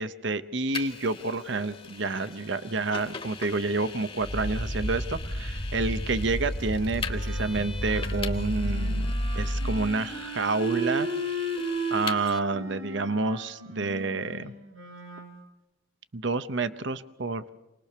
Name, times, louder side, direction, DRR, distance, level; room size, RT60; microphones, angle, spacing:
voice 1, 0.0-11.4 11.9-14.5 16.1-17.4, right 3 dB, 60° right, 12 dB, 0.8 m, -29 dB
Vehicle, 0.7-12.4, left 5 dB, 25° left, 1.1 m, -41 dB
sound 1, 4.2-10.0, equal, 65° left, 2.3 m, -31 dB
Wind instrument woodwind instrument, 7.0-15.3, right 1 dB, 85° right, 7.8 m, -35 dB
28.5 x 20.0 x 6.8 m, 0.94 s
head